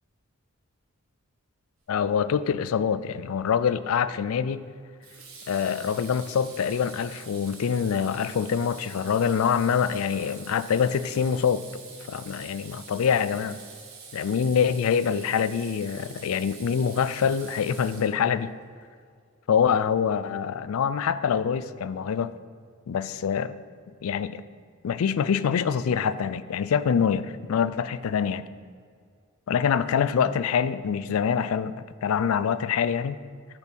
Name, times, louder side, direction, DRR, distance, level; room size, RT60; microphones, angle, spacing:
voice 1, 1.9-4.6 5.5-11.6 12.1-13.6 14.1-18.5 19.5-22.3 22.9-23.5 24.0-24.4 24.8-28.5 29.5-31.7 32.0-33.2, left 7 dB, 85° left, 15 dB, 0.4 m, -25 dB
Water tap faucet / Sink (filling or washing), 3.4-3.7 5.0-18.4, right 5 dB, 80° right, 1.6 m, -46 dB
8.6 x 4.2 x 6.2 m, 2.1 s
head